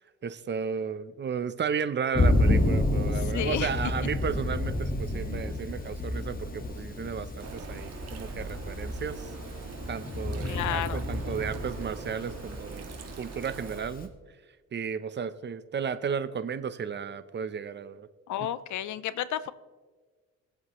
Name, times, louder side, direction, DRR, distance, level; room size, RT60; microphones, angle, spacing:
voice 1, 0.2-9.3 9.9-12.9 13.2-14.1 14.7-18.1 18.4-18.5, right 6 dB, 35° right, 12 dB, 0.8 m, -34 dB
Thunder, 2.1-14.1, left 1 dB, 30° left, 1.7 m, -30 dB
voice 2, 3.2-3.7 10.5-11.0 18.3-19.5, left 12 dB, 70° left, 16 dB, 0.7 m, -32 dB
sound 1, 7.4-13.8, right 6 dB, 55° right, 1.7 m, -44 dB
21.5 x 8.0 x 3.1 m, 1.4 s
cardioid pair, 90°, 30 cm